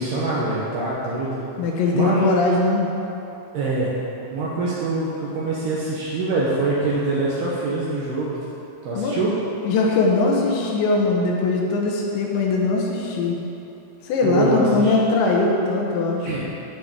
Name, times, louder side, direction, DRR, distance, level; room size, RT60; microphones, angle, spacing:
voice 1, 0.0-1.4 1.9-2.3 3.5-3.9 4.3-8.4 8.8-9.3 14.2-15.0 16.3-16.5, right 2 dB, 70° right, -6 dB, 3.0 m, -24 dB
voice 2, 1.6-2.9 9.0-9.3 9.6-13.4 14.0-16.3, left 3 dB, 75° left, -1 dB, 3.2 m, -21 dB
9.3 x 6.8 x 8.6 m, 2.9 s
omnidirectional pair, 5.3 m